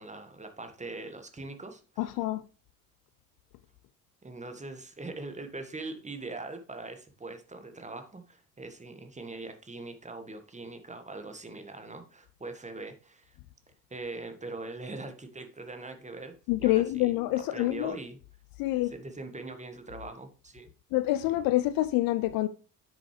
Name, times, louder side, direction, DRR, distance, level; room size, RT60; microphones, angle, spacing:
voice 1, 0.0-2.2 4.2-13.4 13.9-17.1 17.5-18.2 18.8-20.7, right 2 dB, 15° right, 1.6 m, -42 dB
voice 2, 2.0-2.4 16.5-17.9 18.6-18.9 20.9-22.5, left 16 dB, 50° left, 0.6 m, -26 dB
9.7 x 6.4 x 3.3 m
figure-of-eight pair, 55°, 44 cm